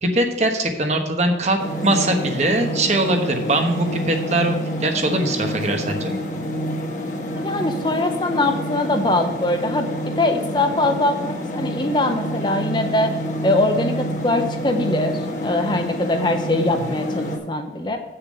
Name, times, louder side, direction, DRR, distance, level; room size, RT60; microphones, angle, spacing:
voice 1, 0.0-6.2 16.7-17.0, right 1 dB, 40° right, 4 dB, 1.2 m, -21 dB
sound 1, 1.6-17.4, equal, 45° left, 1.3 m, -28 dB
voice 2, 7.4-13.2 13.4-18.0, left 2 dB, 25° left, 5 dB, 0.8 m, -22 dB
8.3 x 6.8 x 5.4 m, 1.3 s
head